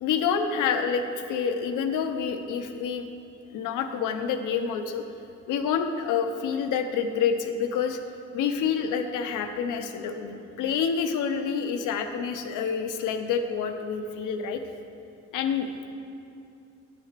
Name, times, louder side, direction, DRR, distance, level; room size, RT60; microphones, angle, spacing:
voice 1, 0.0-3.1 3.5-5.0 5.5-8.0 8.3-14.6 15.3-15.7, left 6 dB, 85° left, 6 dB, 0.7 m, -28 dB
8.8 x 4.2 x 6.6 m, 2.6 s
cardioid pair, 90°, 30 cm